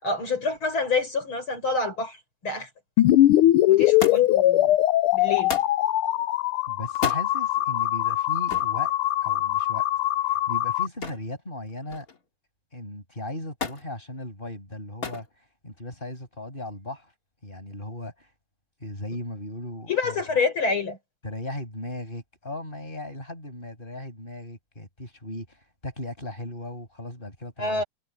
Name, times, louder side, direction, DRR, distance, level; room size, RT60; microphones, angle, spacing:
voice 1, 0.0-2.2 2.4-2.7 3.7-4.8 5.1-5.5 19.9-21.0 27.6-27.8, left 4 dB, 65° left, 6.3 m, -27 dB
sound 1, 3.0-10.9, left 14 dB, 85° left, 1.5 m, -21 dB
Thump thud, 4.0-4.5 5.5-5.8 6.9-7.3 8.5-8.8 11.0-11.3 11.7-12.2 13.6-13.9 15.0-15.3 16.2-16.7 17.7-17.8, left 5 dB, 40° left, 2.8 m, -32 dB
voice 2, 6.7-8.9 9.2-9.9 10.2-12.1 12.7-17.1 17.4-18.3 18.8-20.4 21.2-27.9, left 1 dB, 20° left, 8.1 m, -37 dB
omnidirectional pair, 2.4 m